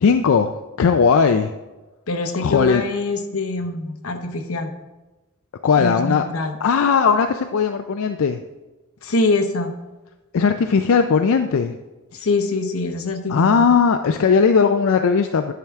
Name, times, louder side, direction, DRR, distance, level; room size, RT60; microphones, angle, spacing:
voice 1, 0.0-1.5 2.4-2.8 5.6-6.2 6.6-8.4 10.3-11.8 13.3-15.5, left 5 dB, 70° left, 7 dB, 0.4 m, -18 dB
voice 2, 2.1-4.7 5.8-6.6 9.0-9.7 12.1-13.7, left 2 dB, 85° left, 7 dB, 0.9 m, -24 dB
10.5 x 5.8 x 3.5 m, 1.1 s
head